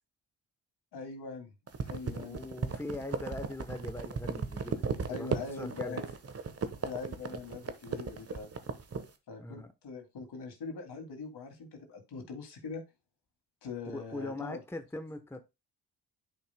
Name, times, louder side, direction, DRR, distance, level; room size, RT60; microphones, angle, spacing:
voice 1, 0.9-1.5 1.8-2.4 5.1-6.0 6.8-8.5 9.3-12.8 13.6-14.6, left 4 dB, 65° left, 2.6 m, -42 dB
sound 1, 1.7-9.1, right 5 dB, 35° right, 1.2 m, -35 dB
voice 2, 2.1-6.0 9.4-9.7 13.9-15.4, left 2 dB, 5° left, 1.0 m, -41 dB
10.5 x 5.6 x 2.2 m
supercardioid pair, 55°, 43 cm